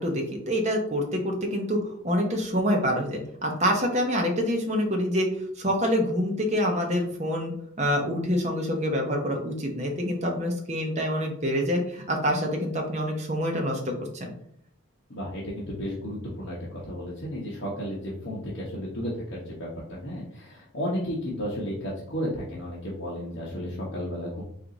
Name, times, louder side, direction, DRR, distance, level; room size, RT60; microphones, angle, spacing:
voice 1, 0.0-5.3 5.6-14.3, equal, 35° right, 1 dB, 0.8 m, -26 dB
voice 2, 15.1-24.4, equal, 60° left, -6 dB, 1.0 m, -33 dB
4.6 x 2.5 x 3.9 m, 0.67 s
head